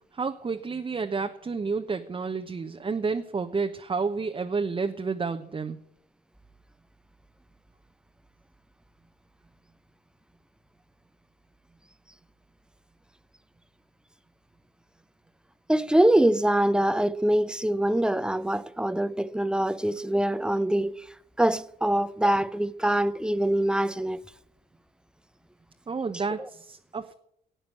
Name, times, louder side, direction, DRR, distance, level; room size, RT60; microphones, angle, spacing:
voice 1, 0.1-5.8 25.9-27.1, right 4 dB, 25° right, 1.1 m, -30 dB
voice 2, 15.7-20.9 21.4-24.2, right 1 dB, 5° right, 0.8 m, -24 dB
16.0 x 8.7 x 8.3 m
hypercardioid pair, 50°, 19 cm